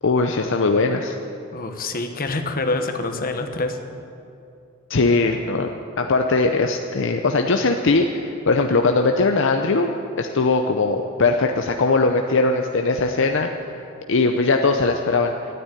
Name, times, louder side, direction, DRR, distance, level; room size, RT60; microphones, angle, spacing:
voice 1, 0.0-1.2 4.9-13.7 14.1-15.3, left 3 dB, 65° left, 4 dB, 0.7 m, -20 dB
voice 2, 1.5-3.8, left 2 dB, 45° left, 6 dB, 1.2 m, -26 dB
13.5 x 9.5 x 9.8 m, 2.6 s
head